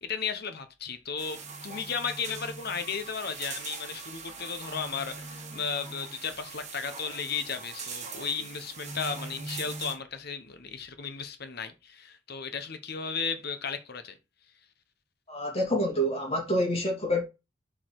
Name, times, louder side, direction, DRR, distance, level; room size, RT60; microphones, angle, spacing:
voice 1, 0.0-14.2, left 6 dB, 55° left, 1.0 m, -35 dB
sound 1, 1.2-10.0, right 4 dB, 40° right, 1.6 m, -41 dB
voice 2, 15.3-17.2, equal, 30° left, 2.3 m, -27 dB
6.7 x 4.1 x 4.8 m
head